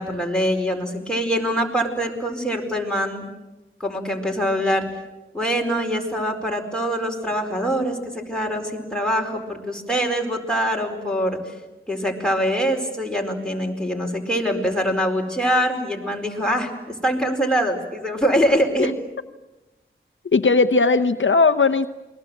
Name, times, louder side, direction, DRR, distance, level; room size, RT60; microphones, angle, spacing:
voice 1, 0.0-3.2 3.8-4.8 5.3-11.4 11.9-18.9, equal, 5° left, 1 dB, 4.7 m, -24 dB
voice 2, 20.3-21.9, left 4 dB, 65° left, 8 dB, 0.8 m, -17 dB
28.5 x 21.5 x 7.8 m, 1.1 s
wide cardioid pair, 50°, 21 cm